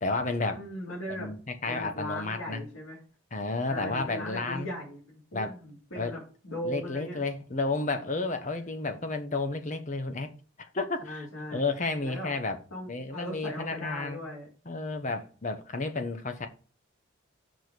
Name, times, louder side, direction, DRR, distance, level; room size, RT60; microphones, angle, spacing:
voice 1, 0.0-0.6 1.1-2.6 3.3-4.7 5.3-5.5 5.9-6.2 6.6-10.3 10.7-12.6 12.9-14.2 14.6-16.5, left 3 dB, 35° left, 0.9 m, -32 dB
voice 2, 0.5-1.3 1.7-3.0 3.7-7.2 11.0-11.7 12.0-12.3 12.7-14.5, equal, 80° left, 3.3 m, -38 dB
6.3 x 4.5 x 6.6 m
head